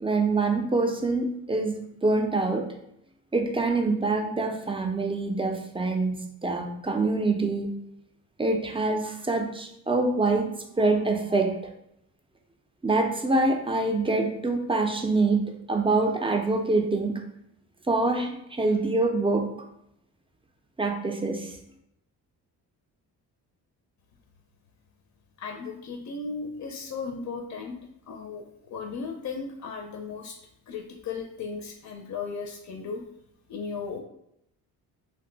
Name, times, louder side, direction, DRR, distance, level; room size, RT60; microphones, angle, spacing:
voice 1, 0.0-2.7 3.3-6.2 6.4-7.7 8.4-11.6 12.8-17.2 17.9-19.5 20.8-21.6, right 3 dB, 15° right, 3 dB, 0.4 m, -25 dB
voice 2, 25.4-27.8 28.1-30.4 30.7-33.0 33.5-34.0, left 5 dB, 50° left, 3 dB, 0.5 m, -36 dB
2.6 x 2.2 x 3.8 m, 0.77 s
cardioid pair, 80°, 37 cm